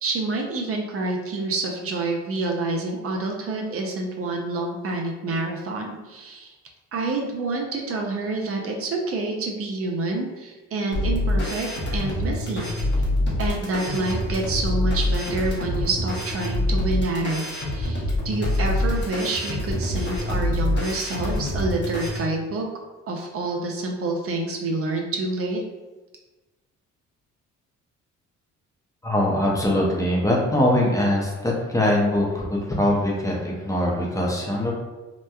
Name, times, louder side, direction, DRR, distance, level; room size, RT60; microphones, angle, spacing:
voice 1, 0.0-6.5 6.9-12.7 13.4-22.7 23.1-25.6, right 2 dB, 50° right, 1 dB, 0.4 m, -28 dB
sound 1, 10.9-22.2, left 1 dB, 35° left, 0.9 m, -25 dB
voice 2, 29.0-34.7, left 1 dB, 10° left, -3 dB, 0.5 m, -22 dB
2.9 x 2.1 x 2.2 m, 1.2 s
cardioid pair, 90°, 30 cm